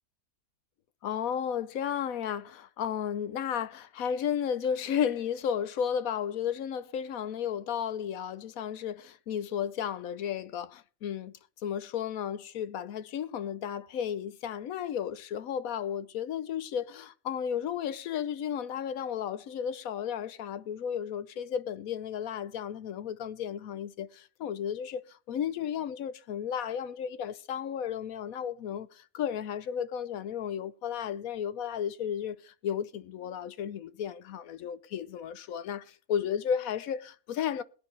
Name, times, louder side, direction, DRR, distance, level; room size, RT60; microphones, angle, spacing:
voice 1, 1.0-11.3 11.6-37.6, left 8 dB, 70° left, 1.1 m, -33 dB
21.0 x 8.9 x 3.2 m
omnidirectional pair, 1.6 m